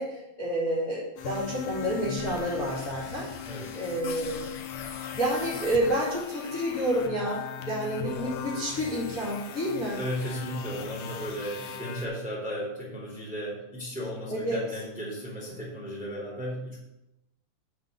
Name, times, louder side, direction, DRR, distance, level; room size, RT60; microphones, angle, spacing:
voice 1, 0.0-3.3 3.7-4.5 5.2-10.0 14.3-14.6, right 1 dB, 25° left, -7 dB, 2.3 m, -29 dB
sound 1, 1.2-12.1, left 8 dB, 75° left, 2.4 m, -38 dB
voice 2, 3.4-3.8 10.0-16.8, equal, ahead, -5 dB, 2.7 m, -35 dB
7.7 x 6.0 x 6.9 m, 0.91 s
omnidirectional pair, 5.0 m